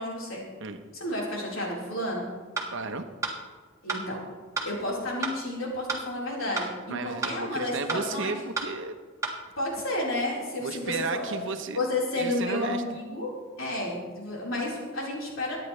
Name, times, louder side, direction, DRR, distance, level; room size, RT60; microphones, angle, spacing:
voice 1, 0.0-0.5 0.9-2.3 3.8-4.2 4.6-8.3 9.6-11.4 11.7-13.3 13.6-15.6, left 1 dB, 70° left, -4 dB, 4.3 m, -31 dB
sound 1, 2.6-2.7 3.2-3.4 3.9-4.0 4.6-4.7 5.2-5.4 5.9-6.0 6.6-6.7 7.2-7.4 7.9-8.0 8.6-8.7 9.2-9.4, right 4 dB, 15° right, 1.6 m, -30 dB
voice 2, 2.7-3.1 6.9-9.0 10.6-11.8 12.1-12.8, right 4 dB, 65° right, 7 dB, 1.0 m, -33 dB
23.5 x 9.7 x 3.3 m, 1.4 s
head